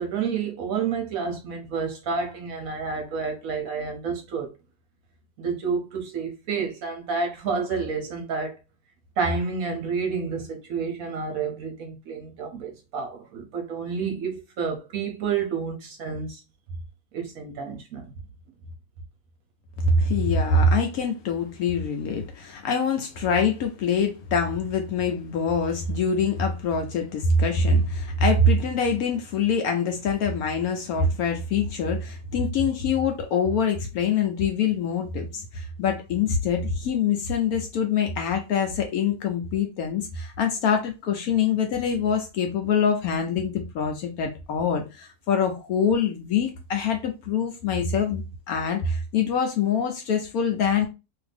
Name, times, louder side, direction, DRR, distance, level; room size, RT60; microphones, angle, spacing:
voice 1, 0.0-4.5 5.4-8.5 9.2-16.4 17.1-18.0, right 5 dB, 65° right, 1.0 m, -29 dB
voice 2, 19.8-48.2 48.5-50.9, left 4 dB, 70° left, 0.9 m, -24 dB
2.8 x 2.5 x 3.3 m
omnidirectional pair, 1.8 m